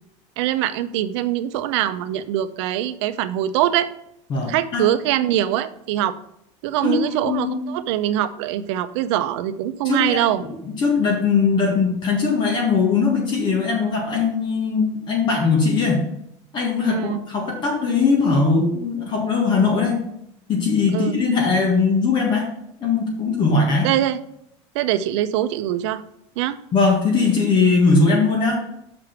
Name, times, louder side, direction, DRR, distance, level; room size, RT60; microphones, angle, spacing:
voice 1, 0.4-3.9 4.5-6.2 6.6-10.4 16.9-17.2 20.9-21.2 23.8-24.2 24.7-26.0 26.4-26.6, right 12 dB, 85° right, 12 dB, 0.6 m, -23 dB
voice 2, 4.3-4.8 6.8-7.5 9.8-10.5 10.8-16.0 16.5-20.0 20.5-22.5 22.8-23.9 26.7-28.6, left 4 dB, 35° left, 0 dB, 1.6 m, -20 dB
6.1 x 4.9 x 5.9 m, 0.76 s
cardioid pair, 160°, 14 cm